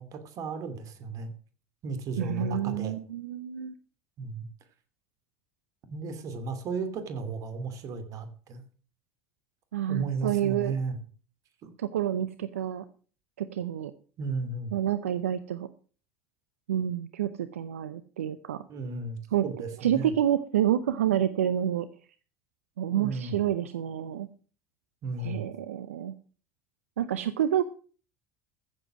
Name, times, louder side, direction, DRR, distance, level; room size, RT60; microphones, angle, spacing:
voice 1, 0.0-1.3 1.8-2.9 4.2-4.5 5.9-8.6 9.9-11.0 11.6-11.7 14.2-14.8 18.7-20.1 22.9-23.4 25.0-25.5, right 3 dB, 50° right, 10 dB, 2.6 m, -34 dB
voice 2, 2.2-3.7 9.7-10.7 11.8-12.8 13.4-13.9 14.7-15.7 16.7-18.6 19.3-19.5 19.8-21.9 22.8-24.3 25.2-26.1 27.0-27.6, right 10 dB, 80° right, 14 dB, 0.6 m, -28 dB
14.5 x 7.5 x 6.2 m, 0.41 s
hypercardioid pair, 70°, 7 cm